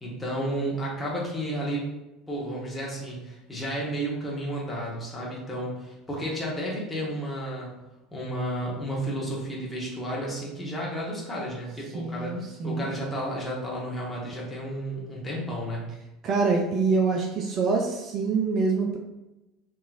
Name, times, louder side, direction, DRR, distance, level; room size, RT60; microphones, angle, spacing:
voice 1, 0.0-1.9 2.3-7.7 8.1-12.4 12.6-15.9, right 1 dB, 10° left, -5 dB, 1.3 m, -32 dB
voice 2, 11.9-12.9 16.2-19.0, right 4 dB, 40° right, 1 dB, 0.4 m, -25 dB
3.7 x 3.0 x 2.5 m, 1.0 s
figure-of-eight pair, 70°, 0 cm